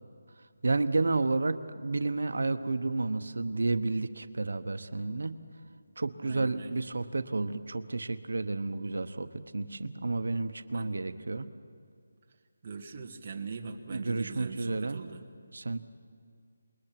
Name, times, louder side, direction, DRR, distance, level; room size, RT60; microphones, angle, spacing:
voice 1, 0.6-5.3 6.0-9.3 9.5-11.5 13.9-15.0 15.5-15.8, right 3 dB, 75° right, 11 dB, 1.1 m, -31 dB
voice 2, 6.2-6.8 10.6-10.9 12.6-15.2, right 5 dB, 30° right, 2 dB, 1.5 m, -41 dB
27.5 x 22.0 x 6.0 m, 2.2 s
figure-of-eight pair, 175°, 0 cm